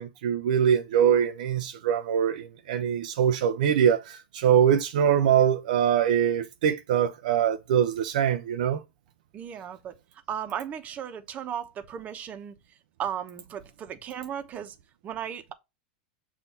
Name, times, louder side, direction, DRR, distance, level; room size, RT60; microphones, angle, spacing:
voice 1, 0.0-8.8, right 8 dB, 75° right, 0.5 m, -23 dB
voice 2, 9.3-10.0 10.3-12.5 13.0-14.7 15.0-15.5, right 9 dB, 35° right, 1.1 m, -35 dB
7.0 x 2.7 x 5.6 m
hypercardioid pair, 100°, 4 cm